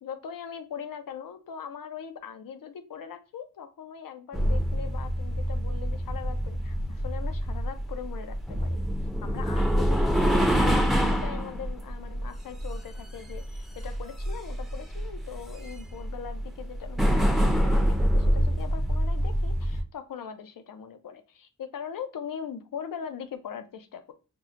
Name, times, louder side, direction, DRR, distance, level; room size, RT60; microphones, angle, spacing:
voice 1, 0.0-8.8 9.2-10.8 11.2-24.1, left 7 dB, 85° left, 8 dB, 0.5 m, -40 dB
sound 1, 4.3-19.8, equal, ahead, 0.5 m, -26 dB
5.3 x 2.1 x 2.4 m, 0.32 s
wide cardioid pair, 70°, 33 cm